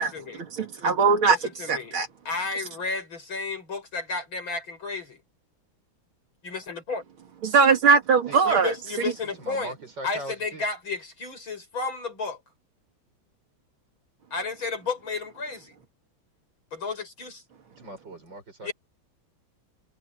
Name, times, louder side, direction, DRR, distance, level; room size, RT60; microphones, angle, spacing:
voice 1, 0.0-0.4 1.2-2.0 2.2-5.2 6.4-7.0 8.5-9.7 10.0-12.4 14.3-15.7 16.7-17.4 18.6-18.7, left 4 dB, 75° left, 7.9 m, -32 dB
voice 2, 0.6-1.4 1.7-2.1 7.4-8.7, right 5 dB, 85° right, 3.1 m, -20 dB
voice 3, 9.4-10.7 17.8-18.7, right 1 dB, 60° right, 7.6 m, -40 dB
omnidirectional pair, 2.2 m